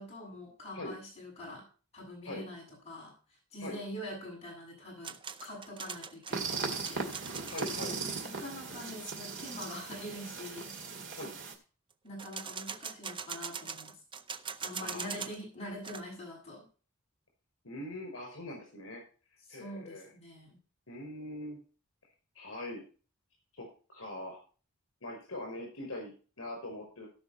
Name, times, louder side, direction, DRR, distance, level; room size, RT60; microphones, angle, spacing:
voice 1, 0.0-1.7 1.9-7.1 8.0-11.2 12.0-14.0 14.6-16.7 19.5-20.6, left 1 dB, 30° left, -3 dB, 6.9 m, -45 dB
sound 1, 5.0-7.9 12.2-15.4 15.7-16.0, right 6 dB, 25° right, 0.5 m, -42 dB
sound 2, 6.3-11.5, right 4 dB, 60° right, 2.3 m, -38 dB
voice 2, 7.5-8.0 11.1-11.4 14.8-15.1 17.6-19.0 19.5-20.1 20.9-21.6 22.4-22.8 23.5-24.4 25.0-26.1 26.4-27.1, left 1 dB, 70° left, 1 dB, 5.4 m, -42 dB
17.0 x 5.7 x 4.2 m, 0.37 s
head